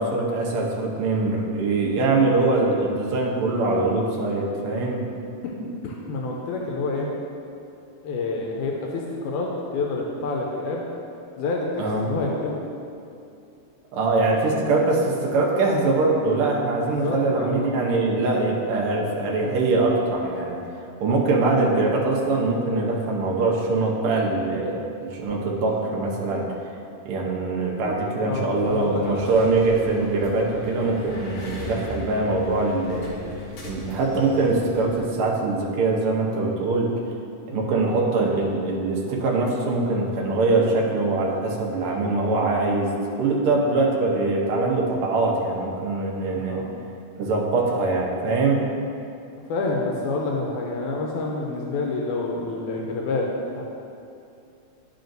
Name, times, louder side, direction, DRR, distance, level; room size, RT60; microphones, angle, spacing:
voice 1, 0.0-5.0 11.8-12.0 13.9-20.6 21.0-26.4 27.0-33.2 33.6-37.1 37.5-46.6 47.2-48.6, right 3 dB, 70° right, -2 dB, 1.3 m, -23 dB
voice 2, 5.8-7.1 8.0-10.8 11.4-12.6 16.9-17.5 28.2-29.3 37.5-37.7 46.3-46.6 49.5-53.3 53.6-53.7, left 3 dB, 85° left, -1 dB, 2.1 m, -28 dB
sound 1, 28.6-35.0, left 3 dB, 60° left, 1.9 m, -38 dB
10.5 x 4.9 x 2.6 m, 2.6 s
omnidirectional pair, 3.5 m